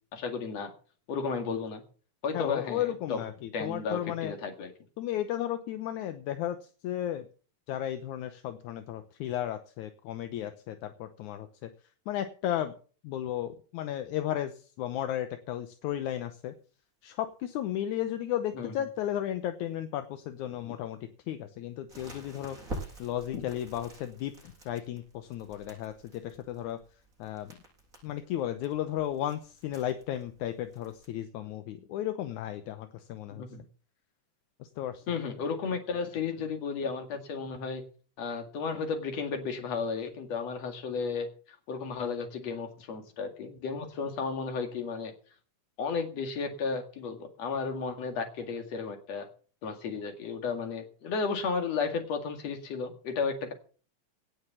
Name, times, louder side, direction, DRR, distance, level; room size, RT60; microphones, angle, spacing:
voice 1, 0.1-0.7 1.1-1.8 2.2-3.2 3.5-4.7 18.5-18.7 23.3-23.4 33.3-33.6 35.1-37.8 38.2-41.3 41.7-45.1 45.8-49.3 49.6-53.5, left 5 dB, 55° left, 6 dB, 3.1 m, -33 dB
voice 2, 2.3-4.3 5.0-6.6 6.8-7.3 7.7-11.7 12.1-12.7 13.0-16.5 17.0-21.0 21.3-22.6 23.0-24.3 24.7-26.8 27.2-27.5 28.0-33.4 34.6-35.0, left 11 dB, 75° left, 8 dB, 2.2 m, -34 dB
Crackle, 21.9-31.0, right 1 dB, 25° right, 6.8 m, -47 dB
17.5 x 6.5 x 7.2 m, 0.41 s
omnidirectional pair, 3.7 m